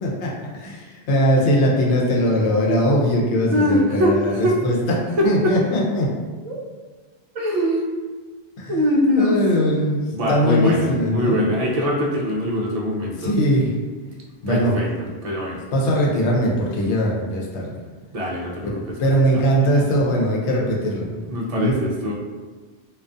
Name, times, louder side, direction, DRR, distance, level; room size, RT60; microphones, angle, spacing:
voice 1, 0.0-4.8 5.2-6.1 8.6-8.8 9.2-11.4 13.2-13.7 14.4-14.8 15.7-17.7 18.6-18.7 19.0-21.2 21.5-21.8, equal, 85° left, -2 dB, 0.9 m, -20 dB
voice 2, 3.5-4.6 5.2-5.5 6.4-6.6 7.3-7.8 8.7-9.4 10.1-13.3 14.5-14.9 15.2-15.6 18.1-19.0 19.3-19.4 21.3-22.1, left 1 dB, 55° right, -2 dB, 0.4 m, -22 dB
2.4 x 2.2 x 2.5 m, 1.4 s
omnidirectional pair, 1.1 m